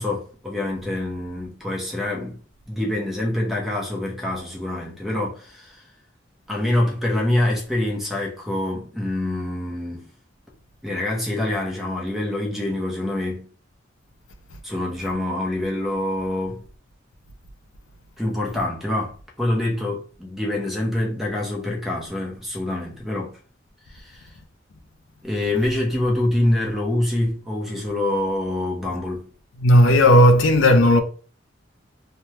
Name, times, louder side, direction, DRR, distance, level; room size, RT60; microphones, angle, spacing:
voice 1, 0.0-2.4 2.7-5.9 6.5-10.1 10.8-13.5 14.6-16.6 18.2-23.4 23.9-24.3 25.2-29.3, left 1 dB, ahead, 0.7 m, -25 dB
voice 2, 29.6-31.0, left 1 dB, 90° left, 0.5 m, -13 dB
3.2 x 2.2 x 2.8 m
head